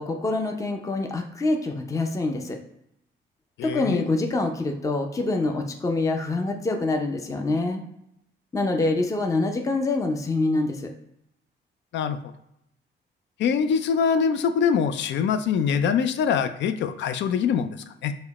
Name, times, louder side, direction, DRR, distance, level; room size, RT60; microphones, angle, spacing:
voice 1, 0.0-2.6 3.6-7.8 8.5-10.9, left 2 dB, 15° left, 3 dB, 0.5 m, -25 dB
voice 2, 3.6-4.1 11.9-12.3 13.4-17.8 18.0-18.1, left 7 dB, 65° left, 11 dB, 0.4 m, -24 dB
4.8 x 2.1 x 4.1 m, 0.79 s
cardioid pair, 90°, 20 cm